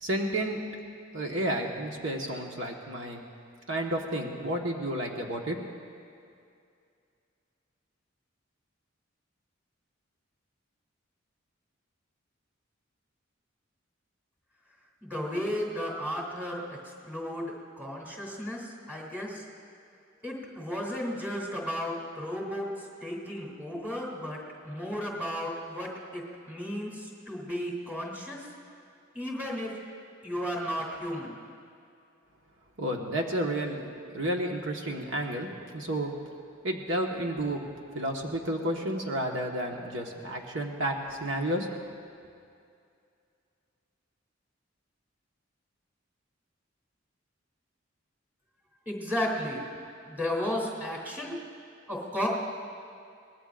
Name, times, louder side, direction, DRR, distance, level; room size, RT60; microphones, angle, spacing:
voice 1, 0.0-0.6 1.1-3.2 3.7-5.6 32.8-33.8 34.1-36.1 36.6-37.6 37.9-41.7, right 1 dB, 70° right, 1 dB, 1.5 m, -31 dB
voice 2, 15.0-16.6 17.1-18.6 18.9-19.4 20.2-22.7 23.0-24.4 24.6-26.2 26.5-28.4 29.1-29.7 30.2-31.3 48.9-49.6 50.0-51.4 51.9-52.3, equal, 10° right, -3 dB, 3.1 m, -33 dB
23.5 x 19.5 x 2.6 m, 2.4 s
head